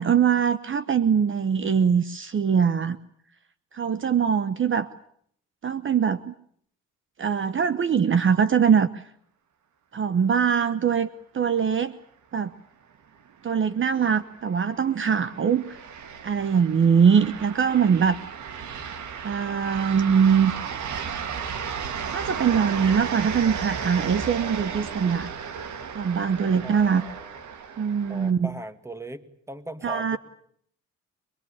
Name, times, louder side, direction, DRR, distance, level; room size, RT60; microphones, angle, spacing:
voice 1, 0.0-3.0 3.7-4.9 5.6-6.3 7.2-9.0 9.9-11.1 11.3-11.9 12.3-12.5 13.4-15.8 16.2-18.2 19.2-20.5 22.1-25.3 25.9-27.0 27.8-28.5 29.8-30.2, right 7 dB, 40° right, 14 dB, 1.0 m, -22 dB
sound 1, 13.4-28.3, right 6 dB, 70° right, 2.4 m, -34 dB
voice 2, 26.6-27.4 28.1-30.2, right 1 dB, 10° right, 11 dB, 2.2 m, -39 dB
25.0 x 22.0 x 8.7 m, 0.66 s
cardioid pair, 90°, 30 cm